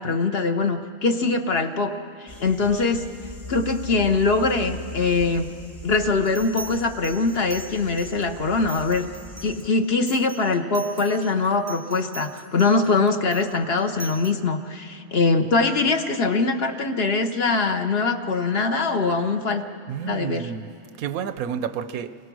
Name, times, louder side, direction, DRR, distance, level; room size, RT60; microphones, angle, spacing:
voice 1, 0.0-1.9 2.2-3.0 3.5-5.5 5.8-9.1 9.4-19.6 20.1-20.4, left 3 dB, 50° left, 6 dB, 1.2 m, -22 dB
sound 1, 2.3-9.7, equal, 30° left, 1.7 m, -41 dB
sound 2, 6.2-8.3 8.7-14.3, right 2 dB, 15° right, 0.6 m, -41 dB
voice 2, 19.9-20.7 21.0-22.2, right 8 dB, 90° right, 12 dB, 1.2 m, -30 dB
28.5 x 21.5 x 6.2 m, 2.5 s
omnidirectional pair, 1.4 m